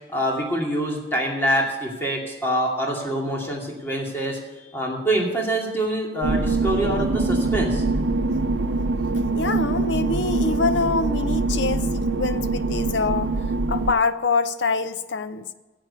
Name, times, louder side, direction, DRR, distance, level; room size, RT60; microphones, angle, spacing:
voice 1, 0.1-4.4 4.7-7.8, right 1 dB, 10° left, 2.5 m, -25 dB
sound 1, 6.2-13.9, right 3 dB, 85° right, 0.6 m, -24 dB
voice 2, 9.3-13.3 13.7-15.5, left 4 dB, 80° left, 0.7 m, -25 dB
10.5 x 7.9 x 8.1 m
head